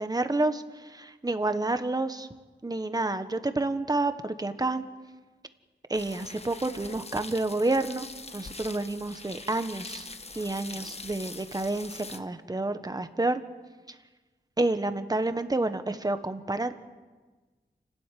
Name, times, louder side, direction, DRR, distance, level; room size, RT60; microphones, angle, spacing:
voice 1, 0.0-2.3 2.6-4.8 5.9-8.1 8.3-10.1 10.3-13.4 14.6-16.7, right 2 dB, 20° right, 9 dB, 1.3 m, -29 dB
sound 1, 5.9-12.2, left 3 dB, 35° left, 1.2 m, -43 dB
29.5 x 13.0 x 9.4 m, 1.3 s
wide cardioid pair, 105°, 19 cm